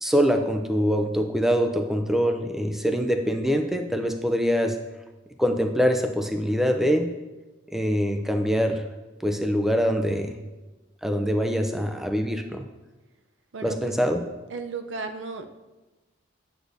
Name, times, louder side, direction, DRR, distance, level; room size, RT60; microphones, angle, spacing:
voice 1, 0.0-4.8 5.4-7.1 7.7-8.8 9.2-10.4 11.0-12.6 13.6-14.2, equal, ahead, 5 dB, 0.5 m, -24 dB
voice 2, 13.5-13.9 14.5-15.5, right 4 dB, 90° right, 6 dB, 0.6 m, -34 dB
8.1 x 7.9 x 2.6 m, 1.2 s
head